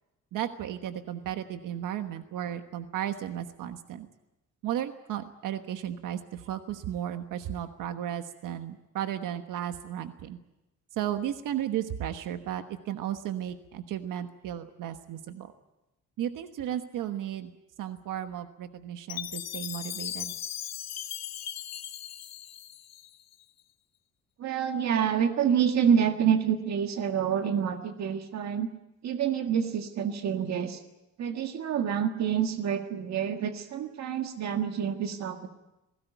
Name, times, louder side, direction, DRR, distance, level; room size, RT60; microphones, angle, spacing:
voice 1, 0.3-4.1 4.6-10.4 11.0-15.5 16.2-17.5 17.8-20.3, right 11 dB, 90° right, 8 dB, 1.3 m, -34 dB
Chime, 19.1-23.3, left 11 dB, 60° left, 1.0 m, -38 dB
voice 2, 24.4-28.7 29.0-30.8 31.2-35.5, right 8 dB, 60° right, 5 dB, 1.8 m, -27 dB
20.5 x 18.0 x 9.2 m, 0.96 s
cardioid pair, 155°, 31 cm